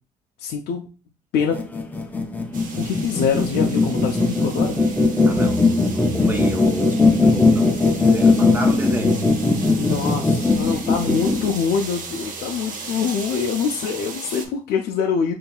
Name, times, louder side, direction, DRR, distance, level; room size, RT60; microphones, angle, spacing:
voice 1, 0.4-0.9 1.3-1.6 2.8-4.8 9.8-15.3, left 6 dB, 75° left, 1 dB, 0.5 m, -24 dB
sound 1, 1.4-11.5, left 3 dB, 10° left, 0.5 m, -19 dB
sound 2, 2.5-14.5, right 4 dB, 50° right, 0.8 m, -36 dB
voice 2, 5.2-9.2, right 1 dB, 10° right, 3 dB, 0.9 m, -30 dB
sound 3, 5.3-14.1, equal, 70° right, 1.2 m, -39 dB
5.4 x 2.7 x 2.3 m, 0.35 s
cardioid pair, 110°, 17 cm